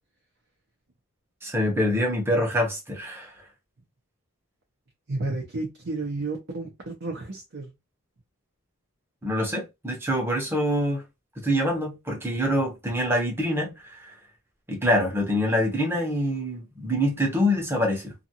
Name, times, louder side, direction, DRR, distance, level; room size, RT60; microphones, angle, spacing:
voice 1, 1.4-3.3 9.2-11.0 11.4-14.1 14.7-18.1, equal, 10° right, 0.8 m, -25 dB
voice 2, 5.1-7.7, right 2 dB, 60° right, 0.7 m, -32 dB
2.6 x 2.4 x 2.8 m
head